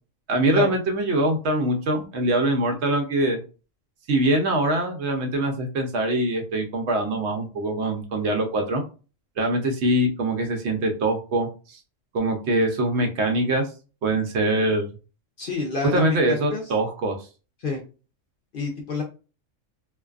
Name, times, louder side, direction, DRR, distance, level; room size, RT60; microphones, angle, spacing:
voice 1, 0.3-3.4 4.1-8.8 9.4-11.8 12.1-13.7 14.0-14.9 15.9-17.2, right 1 dB, 65° right, 3 dB, 0.8 m, -23 dB
voice 2, 15.4-16.6 17.6-17.8 18.5-19.0, left 3 dB, 55° left, 1 dB, 0.6 m, -28 dB
2.5 x 2.3 x 2.3 m, 0.33 s
omnidirectional pair, 1.3 m